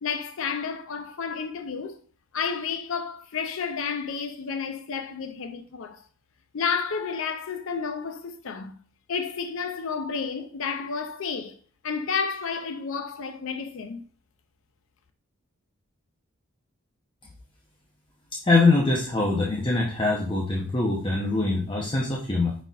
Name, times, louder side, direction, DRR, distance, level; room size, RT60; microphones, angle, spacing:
voice 1, 0.0-2.0 2.3-6.0 6.5-8.8 9.1-11.6 11.8-14.0, left 6 dB, 60° left, 0.5 m, -31 dB
voice 2, 18.4-22.6, left 3 dB, 20° left, 0.7 m, -23 dB
5.3 x 4.2 x 2.4 m
head